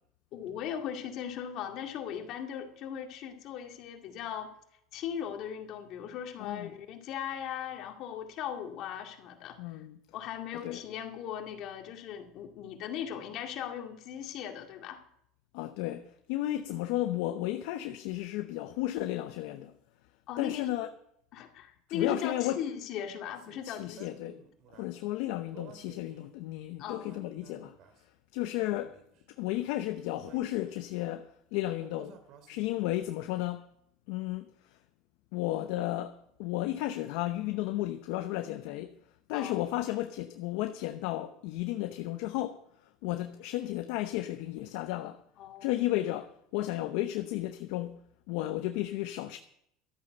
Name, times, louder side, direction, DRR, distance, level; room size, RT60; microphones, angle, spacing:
voice 1, 0.3-4.5 4.9-9.8 10.1-15.0 20.3-20.6 21.3-24.1 26.8-27.1 39.3-39.6 45.4-45.7, left 9 dB, 60° left, 2.2 m, -38 dB
voice 2, 6.4-6.7 9.6-10.0 10.6-10.8 15.5-19.7 20.4-20.9 21.9-22.6 23.6-24.4 24.7-27.7 28.3-29.0 29.3-32.2 32.5-33.7 34.1-34.8 35.3-39.0 39.3-42.6 43.0-45.2 45.6-48.0 48.3-49.4, left 15 dB, 75° left, 0.7 m, -33 dB
sound 1, 23.4-24.9 25.5-26.3 26.8-28.0 28.5-29.2 30.1-30.9 31.8-32.9, right 6 dB, 60° right, 2.3 m, -54 dB
13.0 x 8.7 x 6.7 m
supercardioid pair, 105°, 0 cm